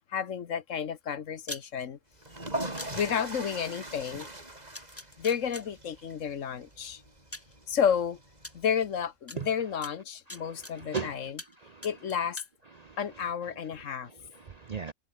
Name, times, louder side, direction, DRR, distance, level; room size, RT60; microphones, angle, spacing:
voice 1, 0.1-2.0 2.9-4.3 5.2-7.0 7.7-8.2 8.5-11.4 11.8-12.4 13.0-14.1, left 7 dB, 60° left, 1.4 m, -31 dB
sound 1, 1.5-1.6 2.8-2.9 4.2-4.3 4.7-5.6 6.7-6.8 7.3-7.5 8.4-8.5 9.3-9.4 9.8-11.0 11.4-11.6 11.8-12.5, left 1 dB, 10° left, 1.2 m, -42 dB
sound 2, 2.2-9.0, right 1 dB, 30° right, 4.5 m, -41 dB
voice 2, 10.3-11.3 11.6-11.9 12.8-13.0 14.0-14.9, right 5 dB, 50° right, 0.4 m, -38 dB
omnidirectional pair, 1.5 m